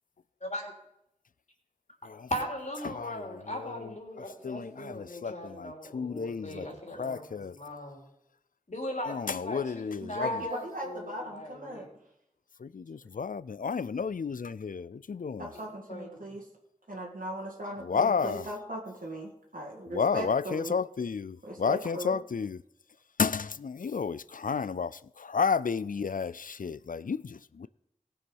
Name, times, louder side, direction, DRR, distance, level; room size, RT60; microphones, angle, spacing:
voice 1, 0.4-0.7 2.3-8.0 8.7-11.9 15.5-16.2, left 1 dB, 60° left, 3.3 m, -38 dB
voice 2, 2.8-3.2 3.5-3.9 4.4-6.7 7.0-7.6 9.1-10.4 12.6-15.5 17.8-18.5 19.9-22.6 23.2-27.7, left 5 dB, 80° left, 0.4 m, -32 dB
voice 3, 10.2-11.9 15.4-16.4 16.9-20.7 21.4-22.1, right 1 dB, 90° right, 1.9 m, -38 dB
18.0 x 7.0 x 5.5 m
wide cardioid pair, 45°, 14 cm